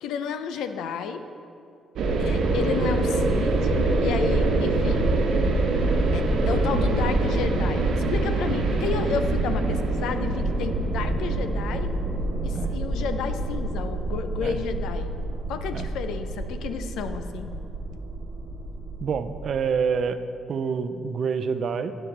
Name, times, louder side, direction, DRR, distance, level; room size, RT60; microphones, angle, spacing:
voice 1, 0.0-1.2 2.2-3.7 4.0-5.2 6.1-11.9 12.4-15.1 15.5-17.5, left 6 dB, 85° left, 9 dB, 0.6 m, -31 dB
sound 1, 2.0-19.6, right 2 dB, 75° right, 1.1 m, -25 dB
voice 2, 19.0-20.2 20.5-21.9, right 6 dB, 60° right, 10 dB, 0.5 m, -27 dB
12.0 x 8.9 x 3.3 m, 2.6 s
cardioid pair, 90°, 0 cm